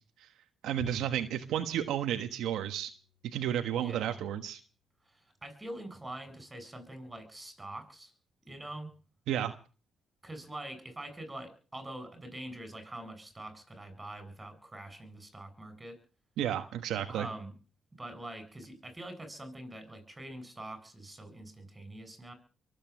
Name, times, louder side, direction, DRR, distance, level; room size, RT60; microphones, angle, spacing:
voice 1, 0.6-2.9 3.3-4.6 9.3-9.5 16.4-17.3, right 10 dB, 85° right, 8 dB, 1.4 m, -32 dB
Bowed string instrument, 0.8-3.3, left 9 dB, 80° left, 4.6 m, -52 dB
voice 2, 3.8-4.2 5.0-8.1 8.5-8.9 10.2-16.0 17.0-17.6 17.9-22.3, right 1 dB, 15° right, 10 dB, 7.5 m, -44 dB
23.5 x 8.6 x 7.2 m, 0.38 s
cardioid pair, 90°, 0 cm